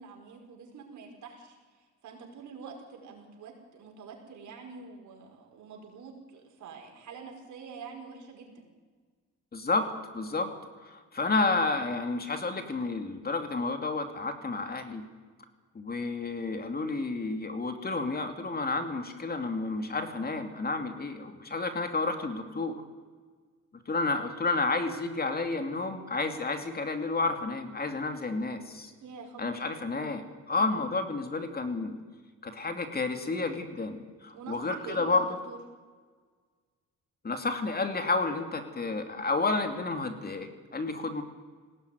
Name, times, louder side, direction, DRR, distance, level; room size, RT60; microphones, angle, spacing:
voice 1, 0.0-8.6 29.0-29.6 30.6-30.8 34.3-35.6, right 5 dB, 75° right, 1 dB, 5.5 m, -46 dB
voice 2, 9.5-10.5 10.8-15.0 15.7-22.8 23.9-28.9 29.4-32.0 32.4-35.3 37.2-41.2, left 3 dB, 30° left, 7 dB, 2.6 m, -31 dB
20.0 x 17.5 x 9.5 m, 1.5 s
cardioid pair, 90°, 30 cm